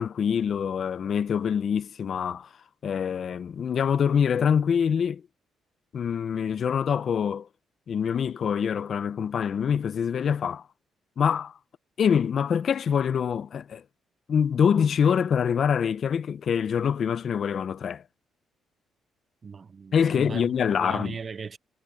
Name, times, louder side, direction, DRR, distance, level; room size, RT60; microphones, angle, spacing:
voice 1, 0.0-2.5 2.8-5.2 5.9-7.5 7.9-10.7 11.2-11.6 12.0-13.8 14.3-18.0 19.9-21.2, left 7 dB, 45° left, 0.5 m, -25 dB
voice 2, 19.4-20.6 20.8-21.6, right 5 dB, 30° right, 0.4 m, -37 dB
cardioid pair, 140°, 0 cm